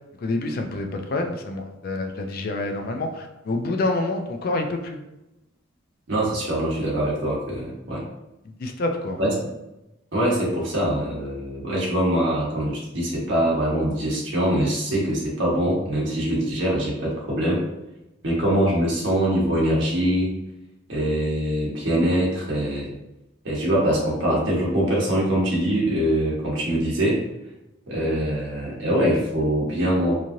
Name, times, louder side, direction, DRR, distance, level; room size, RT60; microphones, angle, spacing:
voice 1, 0.2-5.0 8.6-9.2, left 2 dB, 50° left, 4 dB, 0.3 m, -27 dB
voice 2, 6.1-8.0 9.2-9.3 10.1-17.6 18.2-20.3 20.9-22.9 23.4-27.2 27.9-30.1, right 1 dB, 65° right, -4 dB, 1.1 m, -23 dB
3.0 x 2.5 x 2.6 m, 0.96 s
head